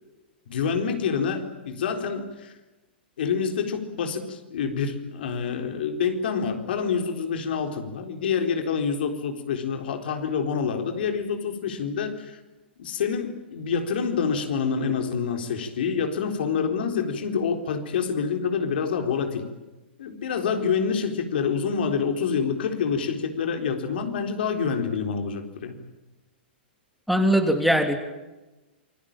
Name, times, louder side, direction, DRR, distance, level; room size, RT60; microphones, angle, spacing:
voice 1, 0.5-2.5 3.2-12.4 12.8-19.5 20.0-25.8, left 6 dB, 65° left, 5 dB, 4.0 m, -27 dB
voice 2, 27.1-28.0, equal, ahead, 5 dB, 2.9 m, -20 dB
28.0 x 21.0 x 8.9 m, 1.1 s
hypercardioid pair, 115°, 6 cm